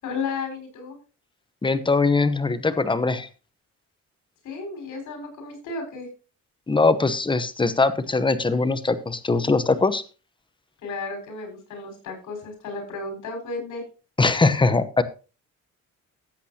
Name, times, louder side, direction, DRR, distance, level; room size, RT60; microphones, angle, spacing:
voice 1, 0.0-1.0 4.4-6.1 10.8-13.8, left 4 dB, 80° left, 3 dB, 5.5 m, -33 dB
voice 2, 1.6-3.3 6.7-10.0 14.2-15.0, left 3 dB, 15° left, 12 dB, 1.0 m, -21 dB
14.5 x 8.3 x 2.9 m, 0.34 s
cardioid pair, 90°, 30 cm